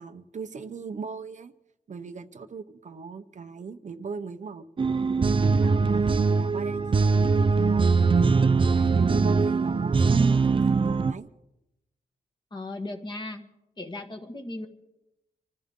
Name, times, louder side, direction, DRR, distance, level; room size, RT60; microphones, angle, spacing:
voice 1, 0.0-1.5 1.9-4.7 5.3-8.4 8.7-11.3, right 5 dB, 50° right, 8 dB, 0.8 m, -38 dB
sound 1, 4.8-11.1, right 4 dB, 30° right, 0.5 m, -22 dB
voice 2, 12.5-13.4 13.8-14.7, left 2 dB, 30° left, 4 dB, 1.9 m, -36 dB
26.0 x 15.0 x 3.8 m, 0.89 s
wide cardioid pair, 145°, 16 cm